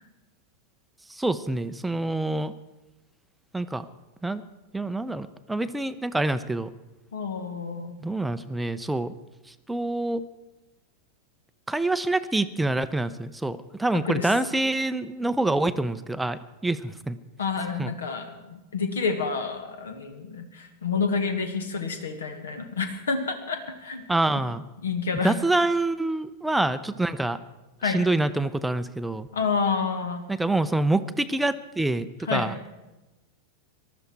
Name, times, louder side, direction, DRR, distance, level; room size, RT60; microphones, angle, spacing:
voice 1, 1.1-2.5 3.5-3.9 4.2-4.4 4.7-6.7 8.0-9.1 9.7-10.2 11.7-17.2 17.8-17.9 24.1-24.6 25.2-27.4 27.9-29.3 30.3-32.7, right 2 dB, 5° right, 12 dB, 0.6 m, -26 dB
voice 2, 7.1-7.9 13.9-14.3 17.4-24.0 24.3-24.4 24.8-25.4 27.8-28.0 29.3-30.3 32.2-32.6, left 5 dB, 65° left, 7 dB, 1.7 m, -29 dB
19.0 x 13.0 x 4.6 m, 1.1 s
figure-of-eight pair, 90°, 0 cm